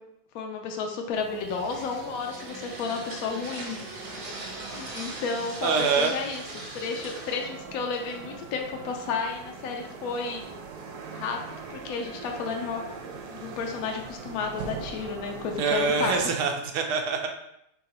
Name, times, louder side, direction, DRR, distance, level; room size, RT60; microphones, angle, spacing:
voice 1, 0.3-3.8 4.4-6.4 6.7-10.4 11.1-11.4 11.7-12.8 13.3-16.3, left 5 dB, 70° left, 2 dB, 0.9 m, -32 dB
sound 1, 1.1-8.6, right 2 dB, 50° right, 0.7 m, -42 dB
sound 2, 1.1-16.3, right 5 dB, 70° right, 1.1 m, -42 dB
voice 2, 5.6-6.1 15.6-17.3, right 5 dB, 90° right, 3 dB, 1.2 m, -25 dB
3.6 x 2.9 x 4.1 m, 0.79 s
omnidirectional pair, 1.8 m